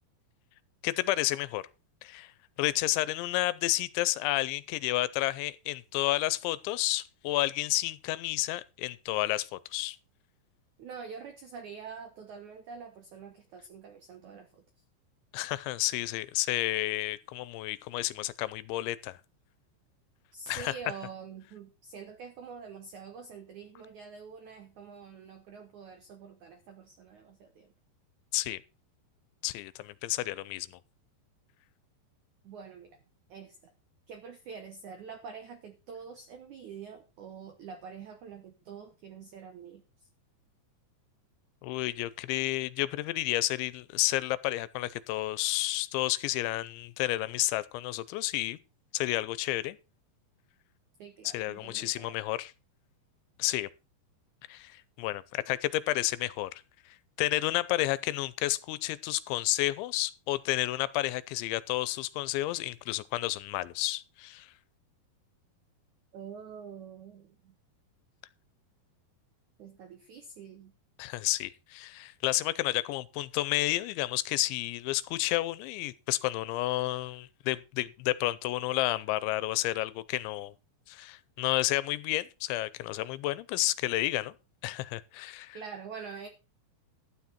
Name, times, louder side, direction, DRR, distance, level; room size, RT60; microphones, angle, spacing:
voice 1, 0.8-1.6 2.0-2.3 2.6-10.0 15.3-19.2 20.5-20.7 28.3-28.6 29.4-30.8 41.6-48.6 48.9-49.8 51.2-52.5 53.4-53.7 54.5-56.6 57.2-64.5 71.0-80.5 80.9-84.3 84.6-85.6, left 17 dB, 85° left, 3.1 m, -31 dB
voice 2, 10.8-14.6 20.3-27.7 32.4-33.0 33.3-33.7 34.1-40.1 51.0-52.2 66.1-67.5 69.6-70.7 85.5-86.3, right 6 dB, 90° right, 1.6 m, -46 dB
12.5 x 9.5 x 4.3 m
omnidirectional pair, 5.2 m